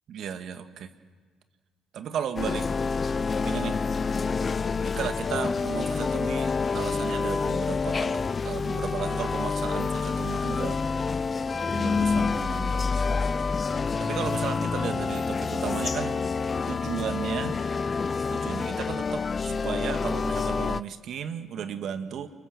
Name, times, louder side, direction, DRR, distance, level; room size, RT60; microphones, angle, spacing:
voice 1, 0.1-0.9 1.9-2.7 3.4-3.8 4.8-10.8 11.7-12.9 14.0-16.2 16.7-17.6 18.3-22.3, right 8 dB, 60° right, 9 dB, 1.8 m, -34 dB
sound 1, 2.4-20.8, left 4 dB, 35° left, 0.6 m, -28 dB
29.0 x 22.0 x 7.2 m, 1.5 s
hypercardioid pair, 55°, 0 cm